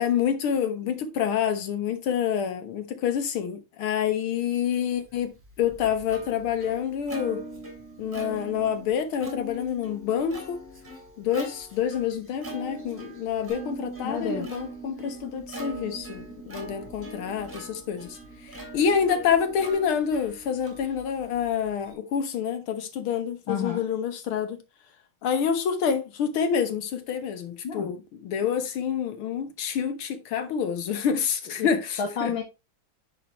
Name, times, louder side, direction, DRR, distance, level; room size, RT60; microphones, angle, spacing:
voice 1, 0.0-5.3 5.6-7.4 8.0-10.6 11.2-18.2 18.4-24.6 25.2-32.3, left 7 dB, 85° left, 2.0 m, -27 dB
Plucked string instrument, 5.2-21.9, equal, 10° right, 3.1 m, -42 dB
Bass guitar, 13.5-19.7, right 7 dB, 10° left, 4.2 m, -45 dB
voice 2, 14.0-14.5 23.5-23.8 27.6-27.9 31.6-31.7 32.0-32.4, left 6 dB, 70° left, 2.1 m, -29 dB
10.5 x 4.9 x 3.0 m
omnidirectional pair, 2.3 m